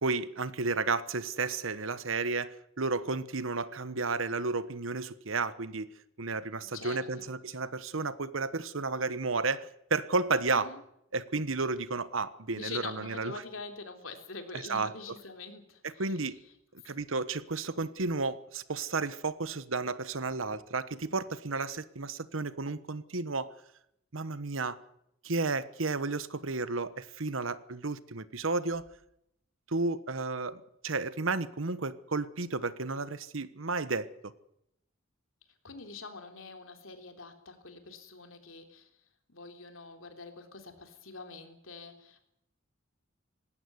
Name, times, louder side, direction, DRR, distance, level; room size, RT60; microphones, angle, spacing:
voice 1, 0.0-5.9 6.2-10.7 11.1-13.4 14.5-14.9 15.8-16.4 16.7-23.5 24.1-24.8 25.2-28.9 29.7-30.6 30.8-34.3, right 3 dB, 70° right, 15 dB, 1.2 m, -32 dB
voice 2, 6.6-7.3 10.5-10.8 12.5-16.0 35.6-38.9 39.3-42.2, left 4 dB, 75° left, 6 dB, 3.5 m, -45 dB
19.5 x 16.0 x 9.7 m, 0.79 s
head